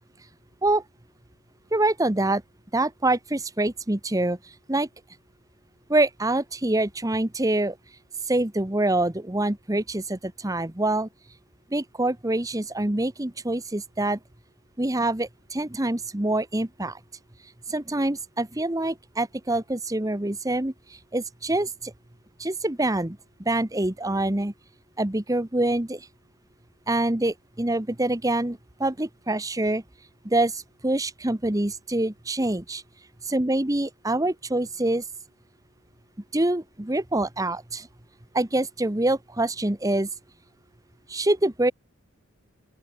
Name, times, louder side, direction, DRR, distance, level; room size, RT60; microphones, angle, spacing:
voice 1, 1.7-2.4 2.7-4.4 4.7-4.9 5.9-7.8 8.3-11.1 11.7-14.2 14.8-17.0 17.7-21.9 22.4-24.5 25.0-26.1 26.9-29.8 30.2-32.8 33.3-35.0 36.3-37.9 38.3-40.1 41.1-41.7, right 2 dB, 15° right, 1.0 m, -25 dB
open air
head